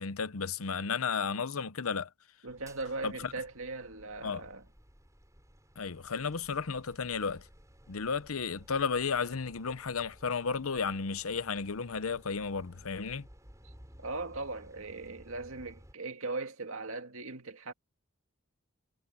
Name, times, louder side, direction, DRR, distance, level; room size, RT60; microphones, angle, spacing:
voice 1, 0.0-2.1 3.0-3.3 4.2-4.4 5.8-7.4 7.9-13.3, left 5 dB, 75° left, 0.8 m, -33 dB
voice 2, 2.4-4.7 13.6-13.7 14.0-17.7, right 3 dB, 70° right, 2.1 m, -39 dB
sound 1, 2.5-15.9, equal, 15° right, 7.3 m, -57 dB
head